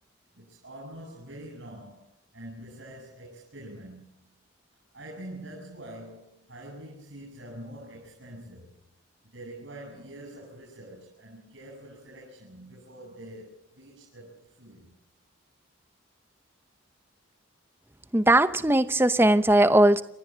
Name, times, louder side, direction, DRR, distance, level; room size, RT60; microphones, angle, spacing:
voice 1, 0.3-2.1 2.3-4.3 4.9-8.8 9.2-14.9, right 1 dB, 70° right, 6.7 m, -45 dB
voice 2, 18.1-20.0, right 1 dB, 10° right, 0.8 m, -19 dB
29.5 x 14.0 x 7.4 m
head